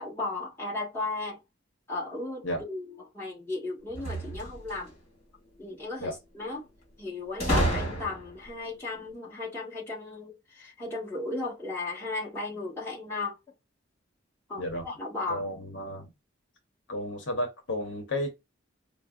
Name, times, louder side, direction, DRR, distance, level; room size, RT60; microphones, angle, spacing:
voice 1, 0.0-1.4 1.9-4.9 5.6-6.7 7.0-13.3 14.5-15.5, left 2 dB, 10° left, 1.3 m, -35 dB
sound 1, 3.9-4.9 7.4-8.5, right 1 dB, 35° left, 2.0 m, -29 dB
voice 2, 15.3-16.1 16.9-18.3, left 1 dB, 70° left, 0.9 m, -32 dB
4.6 x 2.0 x 2.3 m
head